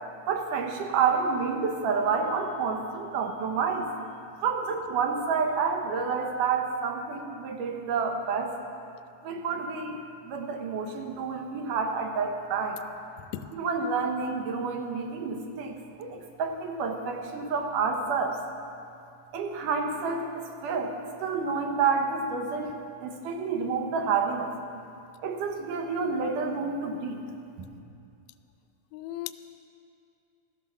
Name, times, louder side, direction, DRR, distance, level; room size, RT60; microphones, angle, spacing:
voice 1, 0.3-3.9 4.4-8.5 9.2-12.8 13.5-18.4 19.3-22.7 23.0-24.8 25.2-27.2 27.6-27.7, right 5 dB, 80° right, 3 dB, 2.8 m, -29 dB
voice 2, 13.2-13.5 28.9-29.3, left 13 dB, 80° left, 12 dB, 1.7 m, -37 dB
16.0 x 13.5 x 5.9 m, 2.5 s
omnidirectional pair, 3.7 m